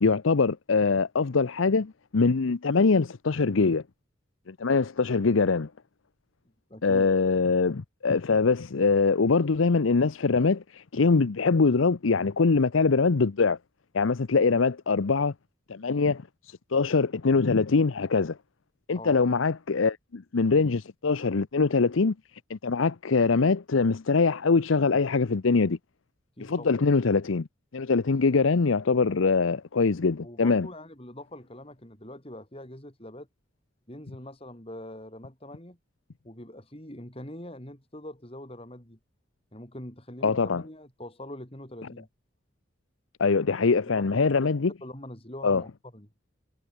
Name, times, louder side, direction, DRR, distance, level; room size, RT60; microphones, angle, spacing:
voice 1, 0.0-3.8 4.5-5.7 6.8-13.6 13.9-15.3 15.7-16.2 16.7-18.4 18.9-22.1 22.5-25.8 26.4-27.5 27.7-30.7 40.2-40.6 43.2-44.7 45.4-45.6, left 4 dB, 90° left, 0.7 m, -23 dB
voice 2, 6.7-7.1 18.9-19.2 26.4-26.7 30.2-33.3 33.9-35.8 36.2-39.0 39.5-42.1 43.9-44.5 44.8-46.1, left 1 dB, 30° left, 4.3 m, -43 dB
head